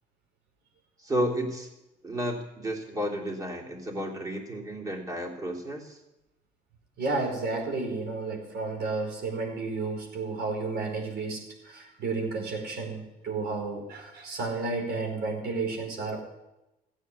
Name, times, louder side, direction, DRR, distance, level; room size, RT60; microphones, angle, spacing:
voice 1, 1.0-1.7 2.0-6.0, equal, 20° right, 0 dB, 3.3 m, -32 dB
voice 2, 7.0-16.2, right 3 dB, 75° right, 2 dB, 4.9 m, -32 dB
15.5 x 9.3 x 9.7 m, 0.93 s
cardioid pair, 110°, 17 cm